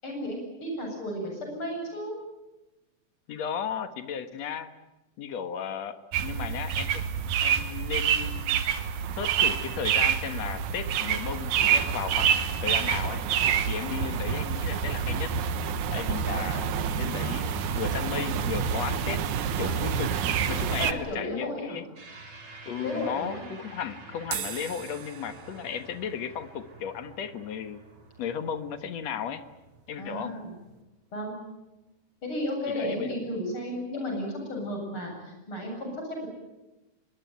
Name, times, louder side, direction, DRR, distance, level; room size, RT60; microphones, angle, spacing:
voice 1, 0.0-2.2 20.8-21.8 22.8-23.5 30.0-30.6 31.1-31.4 32.2-36.3, left 1 dB, 40° left, 1 dB, 8.9 m, -33 dB
voice 2, 3.3-4.7 5.2-8.5 9.2-13.2 13.7-15.3 15.9-19.2 19.6-20.1 20.5-21.8 22.7-27.8 28.2-29.4 29.9-30.4 32.7-33.2 34.5-34.7, left 8 dB, 65° left, 10 dB, 2.5 m, -35 dB
sound 1, 6.1-20.9, right 8 dB, 75° right, 2.7 m, -27 dB
sound 2, 22.0-30.6, right 3 dB, 40° right, 4.3 m, -49 dB
sound 3, 24.2-30.8, right 9 dB, 55° right, 2.1 m, -44 dB
24.5 x 22.0 x 9.4 m, 1.0 s
omnidirectional pair, 3.5 m